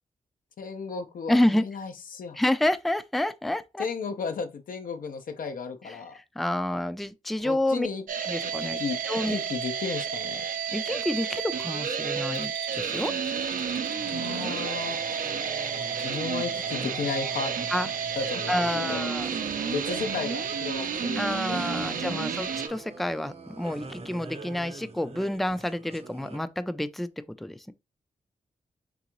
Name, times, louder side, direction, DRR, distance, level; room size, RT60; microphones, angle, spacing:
voice 1, 0.6-2.4 3.8-6.2 7.4-8.0 8.4-9.0 9.3-10.5 14.1-15.0 16.0-17.5 18.2-19.1 19.7-22.3, left 5 dB, 80° left, 0.8 m, -34 dB
voice 2, 1.3-1.6 2.3-3.9 6.1-7.9 8.2-8.8 9.1-9.4 10.7-13.1 17.7-17.9 18.5-19.3 21.1-27.1 27.4-27.7, left 1 dB, ahead, 0.4 m, -28 dB
sound 1, 8.1-22.7, right 7 dB, 80° right, 0.6 m, -31 dB
Bell, 12.2-16.3 16.6-16.7, right 1 dB, 55° left, 1.4 m, -46 dB
sound 2, 14.0-26.4, right 3 dB, 45° right, 0.7 m, -43 dB
3.9 x 3.6 x 3.0 m
cardioid pair, 60°, 14 cm